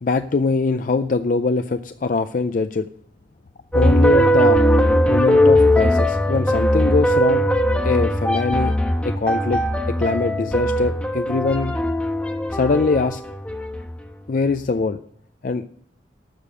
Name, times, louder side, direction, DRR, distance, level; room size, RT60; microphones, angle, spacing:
voice 1, 0.0-2.8 3.7-4.6 5.1-7.4 7.8-8.7 9.0-11.7 12.5-13.2 14.3-15.0 15.4-15.6, left 4 dB, 45° left, 9 dB, 0.4 m, -22 dB
sound 1, 3.7-13.9, equal, 5° left, 1.2 m, -19 dB
12.5 x 6.6 x 6.5 m, 0.63 s
head